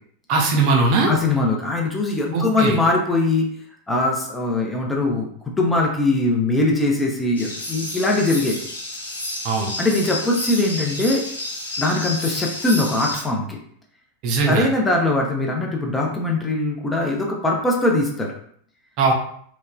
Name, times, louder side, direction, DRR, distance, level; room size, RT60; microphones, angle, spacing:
voice 1, 0.3-1.1 2.3-2.7 9.4-9.7 14.2-14.7 19.0-19.1, right 3 dB, 40° right, 1 dB, 0.5 m, -19 dB
voice 2, 1.1-3.5 3.9-5.3 5.6-8.6 9.8-11.2 11.8-13.6 14.5-18.3, left 2 dB, 10° left, 0 dB, 0.6 m, -21 dB
sound 1, 7.4-13.2, left 1 dB, 75° left, 0.7 m, -30 dB
3.1 x 2.2 x 2.2 m, 0.62 s
figure-of-eight pair, 90°, 0 cm